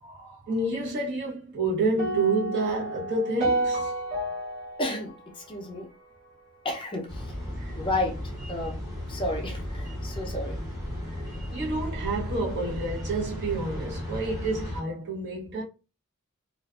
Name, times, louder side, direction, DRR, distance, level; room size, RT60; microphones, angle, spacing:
voice 1, 0.0-3.9 7.6-7.7 9.9-10.0 11.3-15.6, right 3 dB, 55° right, 0.9 m, -29 dB
sound 1, 2.0-6.3, right 1 dB, 40° right, 1.3 m, -31 dB
voice 2, 4.8-5.9 6.6-7.4 7.8-8.8 9.1-10.6, left 1 dB, 25° left, 0.5 m, -32 dB
sound 2, 7.1-14.8, left 1 dB, 15° right, 0.8 m, -35 dB
2.4 x 2.3 x 2.3 m
head